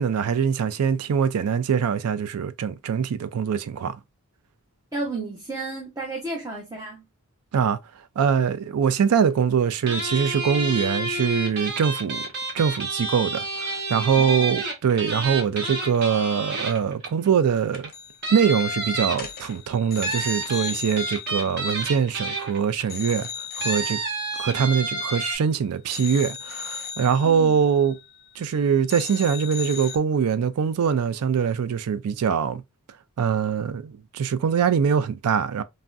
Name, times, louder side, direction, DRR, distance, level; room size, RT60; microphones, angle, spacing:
voice 1, 0.0-4.0 7.5-7.8 8.2-12.2 12.5-17.9 18.3-23.3 23.6-24.0 24.4-28.0 28.4-32.6 33.2-35.6, right 7 dB, 75° right, 0.4 m, -23 dB
voice 2, 4.9-7.0 14.2-14.6 27.2-27.6, right 2 dB, 15° right, 0.7 m, -32 dB
sound 1, 9.9-17.3 17.7-17.9 18.2-19.5 20.0-22.8 23.6-25.4, right 2 dB, 50° right, 1.1 m, -29 dB
sound 2, 17.7-18.2 18.4-18.6 19.1-22.5 22.9-25.5 25.9-28.6 28.9-30.0, left 6 dB, 45° left, 0.6 m, -37 dB
3.4 x 2.1 x 2.4 m
head